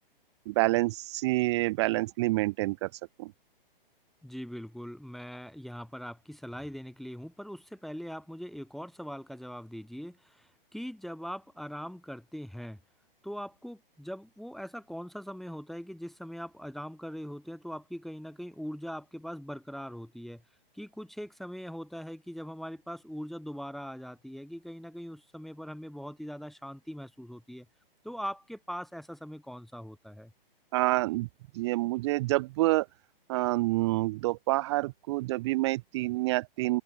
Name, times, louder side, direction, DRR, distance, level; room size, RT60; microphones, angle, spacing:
voice 1, 0.5-2.9 3.2-3.3 30.7-31.3 31.5-32.9 33.3-36.8, right 20 dB, 30° right, 0.6 m, -27 dB
voice 2, 4.2-12.8 13.2-20.4 20.7-27.7 28.0-30.3, equal, ahead, 0.9 m, -41 dB
hypercardioid pair, 135°, 29 cm